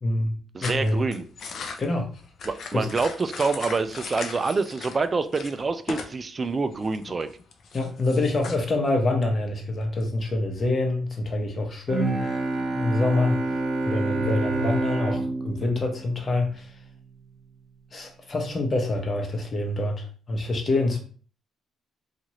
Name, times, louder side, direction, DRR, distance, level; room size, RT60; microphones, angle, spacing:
voice 1, 0.0-0.4 0.6-1.0 1.8-2.1 2.7-2.9 4.1-4.3 7.7-12.4 12.7-13.4 13.8-16.7 17.9-21.0, left 2 dB, 40° left, 3 dB, 0.9 m, -26 dB
voice 2, 0.5-1.3 2.5-7.3, right 4 dB, 35° right, 10 dB, 0.3 m, -26 dB
sound 1, 0.6-5.0 5.3-6.2 6.4-8.5, left 5 dB, 60° left, 0.5 m, -38 dB
Bowed string instrument, 11.9-17.0, right 2 dB, 55° right, 1.0 m, -28 dB
2.9 x 2.4 x 2.9 m, 0.42 s
cardioid pair, 90°, 0 cm